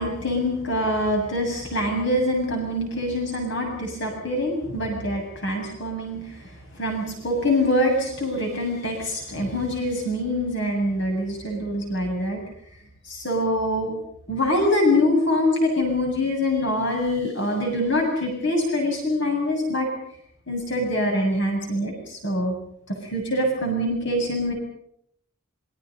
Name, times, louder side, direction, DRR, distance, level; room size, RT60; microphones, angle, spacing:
voice 1, 0.0-12.4 13.0-13.9 14.3-19.9 20.5-22.5 22.9-24.5, left 1 dB, 55° left, 1 dB, 7.8 m, -24 dB
29.0 x 26.0 x 5.5 m, 0.71 s
head